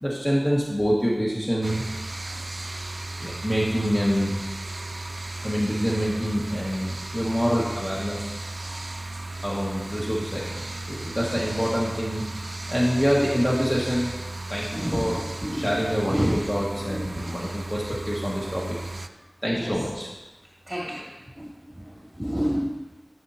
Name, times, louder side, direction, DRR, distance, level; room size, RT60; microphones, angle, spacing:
voice 1, 0.0-1.8 3.2-4.4 5.4-8.6 9.4-12.2 12.7-14.1 14.5-15.2 15.6-19.1 19.4-20.1, equal, 15° left, -6 dB, 1.7 m, -26 dB
sound 1, 1.6-19.1, right 2 dB, 70° right, 0.3 m, -35 dB
voice 2, 14.7-16.4 16.8-17.3 19.5-19.8 20.7-21.1 21.3-21.5 21.7-22.6, equal, 20° right, -7 dB, 2.1 m, -29 dB
13.5 x 6.3 x 2.8 m, 1.1 s
wide cardioid pair, 50°, 0 cm